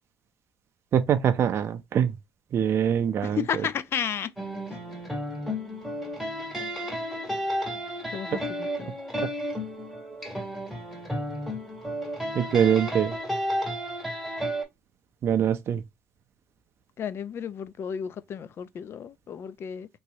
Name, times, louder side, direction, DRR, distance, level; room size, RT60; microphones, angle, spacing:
voice 1, 0.9-2.1 2.5-3.7 12.3-13.2 15.2-15.8, right 8 dB, 50° right, 0.4 m, -24 dB
voice 2, 3.2-4.3 4.7-4.8 8.1-8.9 17.0-19.9, left 8 dB, 50° left, 0.4 m, -33 dB
sound 1, 4.4-14.6, equal, ahead, 1.6 m, -32 dB
3.0 x 2.8 x 2.7 m
supercardioid pair, 75°, 5 cm